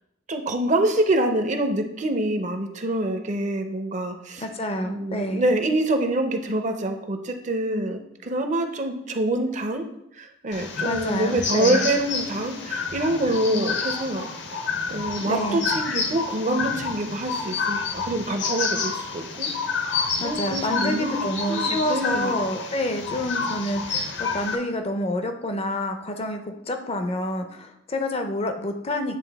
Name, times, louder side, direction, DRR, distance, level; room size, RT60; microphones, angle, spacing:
voice 1, 0.3-4.5 4.8-9.9 10.1-19.5 19.8-21.2 21.5-22.3, right 1 dB, 40° right, 6 dB, 0.6 m, -26 dB
voice 2, 4.4-5.5 10.8-11.9 15.2-15.7 20.2-29.2, left 1 dB, 30° left, 6 dB, 0.5 m, -28 dB
sound 1, 10.5-24.6, left 5 dB, 60° left, 0.8 m, -29 dB
9.2 x 3.5 x 3.4 m, 0.82 s
head